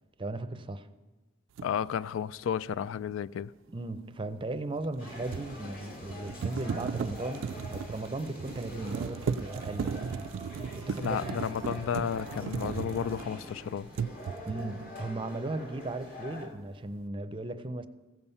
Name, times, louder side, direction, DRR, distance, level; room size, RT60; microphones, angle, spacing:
voice 1, 0.2-0.9 3.7-7.4 7.7-11.4 14.5-17.9, right 2 dB, 25° right, 0.5 m, -37 dB
voice 2, 1.6-3.5 11.0-13.9, left 8 dB, 90° left, 0.3 m, -32 dB
sound 1, 1.6-1.7 4.8-13.6 13.9-14.7, right 6 dB, 80° right, 0.3 m, -36 dB
sound 2, 5.0-16.5, equal, 50° left, 2.2 m, -44 dB
16.0 x 7.2 x 5.5 m
head